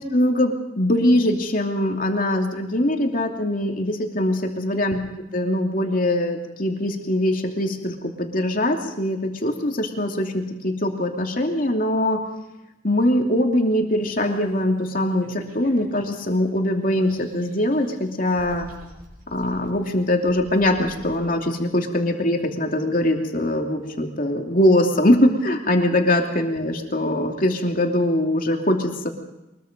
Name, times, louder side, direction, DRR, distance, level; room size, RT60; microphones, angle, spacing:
voice 1, 0.0-5.0 5.3-12.3 12.8-18.7 19.3-29.1, left 1 dB, 45° left, 2 dB, 2.8 m, -22 dB
sound 1, 14.0-14.7 15.2-16.3 16.8-17.9 18.2-21.2, right 1 dB, 45° right, 6.2 m, -46 dB
23.5 x 22.0 x 5.3 m, 0.97 s
head